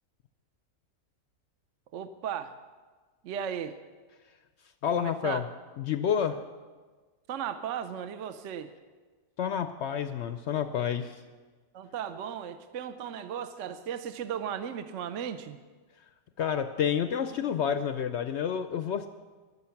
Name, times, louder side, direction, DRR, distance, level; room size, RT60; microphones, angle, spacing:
voice 1, 1.9-2.5 3.2-3.8 5.0-5.4 7.3-8.7 11.7-15.6, right 8 dB, 65° right, 10 dB, 0.8 m, -36 dB
voice 2, 4.8-5.5 5.8-6.4 9.4-11.2 16.4-19.1, left 8 dB, 70° left, 10 dB, 0.6 m, -29 dB
20.5 x 7.1 x 5.8 m, 1.4 s
omnidirectional pair, 1.6 m